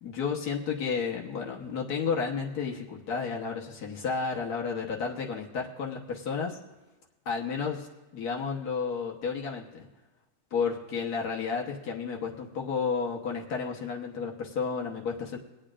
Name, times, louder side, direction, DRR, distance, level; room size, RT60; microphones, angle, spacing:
voice 1, 0.0-6.6 7.3-7.9 8.1-9.9 10.5-15.4, left 5 dB, 90° left, -1 dB, 1.7 m, -32 dB
24.5 x 8.9 x 2.5 m, 1.1 s
omnidirectional pair, 1.6 m